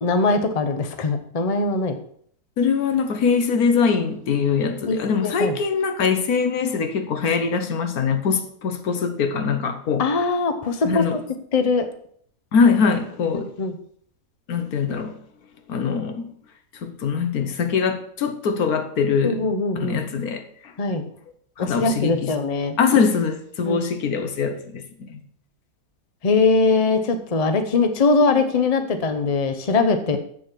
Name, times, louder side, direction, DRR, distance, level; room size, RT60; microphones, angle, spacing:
voice 1, 0.0-2.0 4.9-5.6 10.0-11.0 11.5-11.9 13.3-13.7 19.2-20.0 20.8-21.1 21.6-22.7 23.7-23.8 26.2-30.2, left 4 dB, 30° left, 0.8 m, -21 dB
voice 2, 2.6-10.0 10.8-11.2 12.5-13.5 14.5-15.1 15.7-16.3 16.8-19.4 19.8-20.7 21.6-22.3 22.8-24.8 25.1-25.2, left 5 dB, 80° left, 1.5 m, -22 dB
7.6 x 6.7 x 6.1 m
omnidirectional pair, 1.6 m